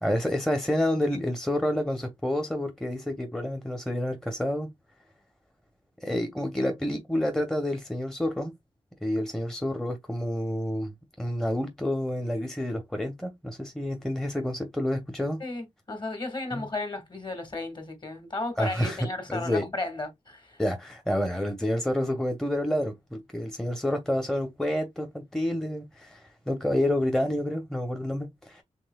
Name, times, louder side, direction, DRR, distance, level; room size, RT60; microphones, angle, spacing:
voice 1, 0.0-4.7 6.0-8.5 9.0-15.4 16.5-16.7 18.6-19.6 20.6-28.6, left 1 dB, 5° left, 0.9 m, -29 dB
voice 2, 15.4-20.6, left 2 dB, 40° left, 1.9 m, -34 dB
5.4 x 3.1 x 2.3 m
cardioid pair, 70°, 12 cm